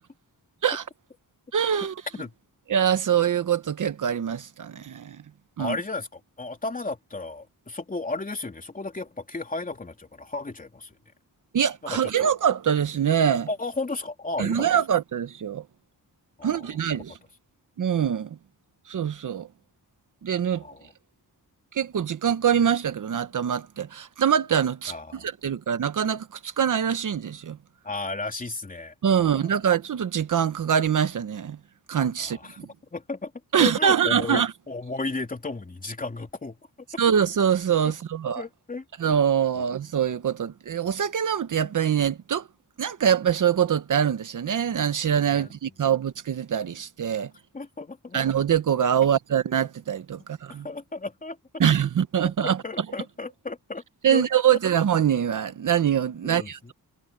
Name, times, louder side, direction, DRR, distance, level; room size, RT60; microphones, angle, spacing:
voice 1, 1.5-1.9 2.7-5.2 5.6-5.8 11.5-13.5 14.4-15.6 16.4-17.2 17.8-18.4 18.9-19.5 20.2-20.6 21.7-24.9 25.2-27.6 29.0-31.6 31.9-32.7 33.5-34.5 37.0-38.4 39.0-42.4 42.8-47.3 48.1-50.7 51.6-52.6 54.0-56.7, right 8 dB, 55° right, 1.0 m, -24 dB
voice 2, 5.6-10.9 11.8-12.3 13.5-14.7 16.4-16.7 20.6-20.9 24.9-25.3 27.8-29.5 32.2-32.6 32.9-33.3 33.6-36.6 38.4-38.8 45.3-45.5 47.5-48.2 50.5-51.4 52.4-54.2 54.5-54.6 56.2-56.7, left 3 dB, 25° left, 3.2 m, -34 dB
wide cardioid pair, 160°, 36 cm